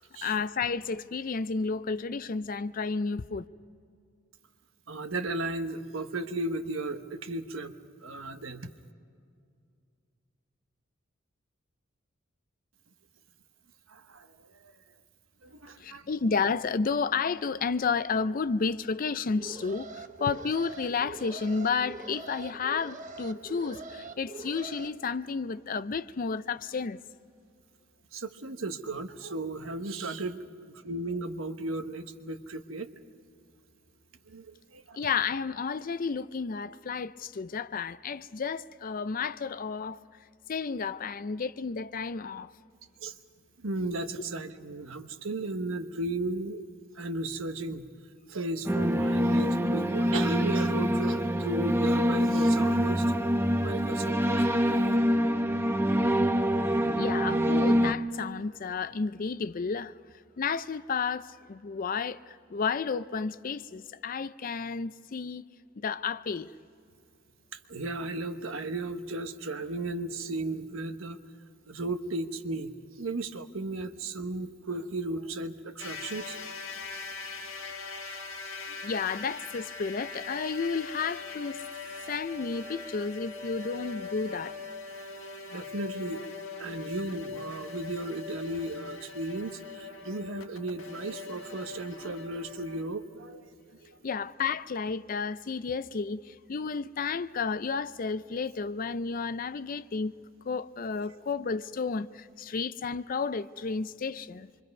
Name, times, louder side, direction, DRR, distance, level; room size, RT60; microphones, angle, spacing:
voice 1, 0.2-3.5 15.8-27.0 34.9-40.0 40.5-42.5 57.0-59.9 60.4-65.4 65.8-66.5 78.8-81.6 82.1-84.6 94.0-100.1 100.4-104.5, left 5 dB, 40° left, 0.4 m, -32 dB
voice 2, 4.9-7.7 8.0-8.7 13.9-14.3 14.6-14.7 15.4-16.3 28.1-30.4 30.6-32.9 34.3-35.0 43.0-43.2 43.6-46.6 46.9-47.9 48.3-53.1 53.6-55.0 67.5-72.7 73.0-76.4 78.7-78.9 85.5-86.2 86.6-93.4 93.8-94.0, right 2 dB, 75° right, 1.1 m, -35 dB
Alarm, 19.2-24.9, right 3 dB, 40° right, 1.0 m, -43 dB
sound 1, 48.7-57.9, equal, 10° right, 0.6 m, -25 dB
sound 2, 75.8-92.9, left 4 dB, 75° left, 1.5 m, -41 dB
26.5 x 24.0 x 5.4 m
head